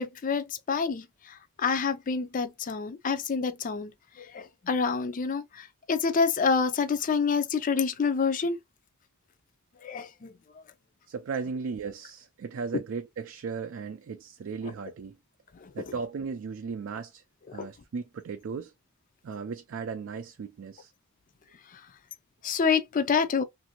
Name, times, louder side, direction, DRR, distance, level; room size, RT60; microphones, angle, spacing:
voice 1, 0.0-8.6 9.8-10.3 15.5-15.7 21.7-21.8 22.4-23.4, left 5 dB, 40° left, 0.4 m, -28 dB
voice 2, 11.1-15.2 15.7-17.2 17.5-18.7 19.2-20.9, right 5 dB, 60° right, 0.4 m, -36 dB
2.9 x 2.6 x 2.9 m
head